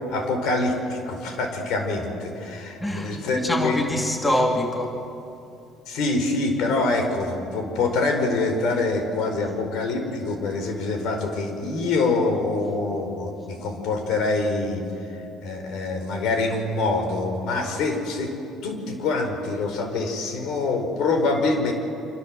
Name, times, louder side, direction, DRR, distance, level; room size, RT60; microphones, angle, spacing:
voice 1, 0.1-3.8 5.9-14.8 15.4-18.3 18.6-21.7, left 3 dB, 70° left, 5.0 m, -25 dB
voice 2, 2.8-5.1, left 1 dB, 15° left, 2.1 m, -25 dB
26.5 x 26.5 x 7.8 m
cardioid pair, 115°, 0 cm